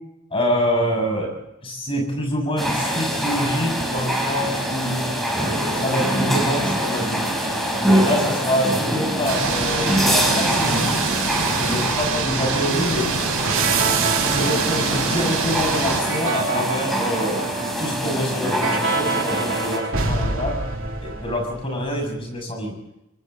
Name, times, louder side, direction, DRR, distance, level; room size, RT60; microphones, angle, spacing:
voice 1, 0.3-1.3 1.6-5.2 5.7-7.2 7.8-10.7 11.7-13.2 14.2-17.4 17.8-20.6 21.0-22.8, equal, 25° left, 1 dB, 7.1 m, -26 dB
sound 1, 2.6-19.8, right 1 dB, ahead, 4.6 m, -24 dB
sound 2, 9.3-16.0, right 4 dB, 80° right, 4.7 m, -25 dB
sound 3, 13.4-21.9, right 4 dB, 65° right, 3.0 m, -26 dB
26.0 x 25.0 x 4.1 m, 0.86 s
head